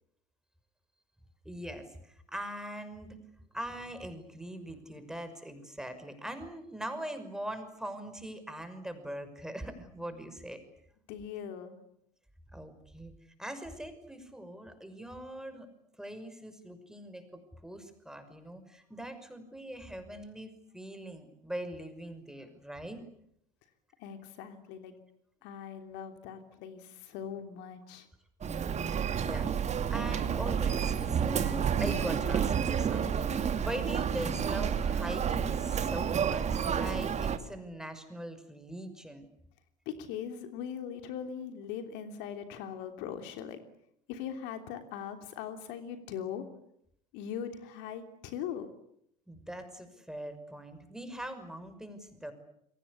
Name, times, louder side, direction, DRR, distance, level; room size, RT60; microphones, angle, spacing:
voice 1, 1.4-3.2 3.5-10.6 12.5-13.1 13.4-15.7 16.0-23.0 28.4-29.5 29.9-39.3 49.3-52.3, right 1 dB, 5° right, 9 dB, 5.9 m, -41 dB
voice 2, 11.1-11.8 24.0-24.9 25.4-28.1 39.8-43.6 44.1-46.4 47.1-48.7, left 8 dB, 60° left, 7 dB, 3.1 m, -40 dB
Human voice, 28.4-37.4, right 7 dB, 35° right, 2.5 m, -30 dB
29.0 x 23.5 x 8.5 m, 0.75 s
figure-of-eight pair, 70°, 20 cm